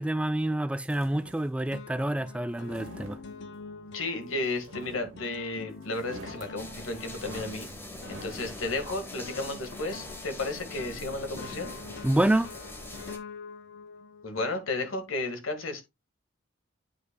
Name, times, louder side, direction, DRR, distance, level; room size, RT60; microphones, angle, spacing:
voice 1, 0.0-3.2 12.0-12.5, right 1 dB, 5° right, 0.3 m, -27 dB
sound 1, 0.8-1.5 2.4-3.7 4.6-5.5 5.8-8.4, right 2 dB, 80° right, 1.2 m, -47 dB
sound 2, 0.9-1.4 1.7-15.1, left 4 dB, 60° left, 0.7 m, -46 dB
voice 2, 3.9-7.7 8.1-11.7 14.2-15.8, left 2 dB, 90° left, 1.7 m, -33 dB
sound 3, 6.6-13.2, left 1 dB, 10° left, 1.0 m, -43 dB
9.5 x 5.5 x 2.2 m
head